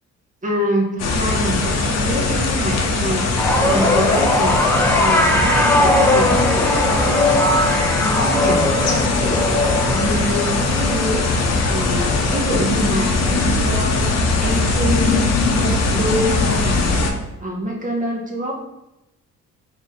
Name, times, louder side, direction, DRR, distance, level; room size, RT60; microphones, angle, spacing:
voice 1, 0.4-4.6 4.9-7.6 8.0-11.3 11.7-14.1 14.4-15.2 15.6-17.0 17.4-18.5, equal, 25° right, -1 dB, 1.2 m, -25 dB
sound 1, 1.0-17.1, left 3 dB, 60° left, 0.8 m, -20 dB
sound 2, 3.4-13.8 14.2-14.6 15.7-15.8, left 1 dB, 5° left, 0.4 m, -20 dB
4.7 x 2.8 x 3.7 m, 0.93 s
cardioid pair, 90°, 30 cm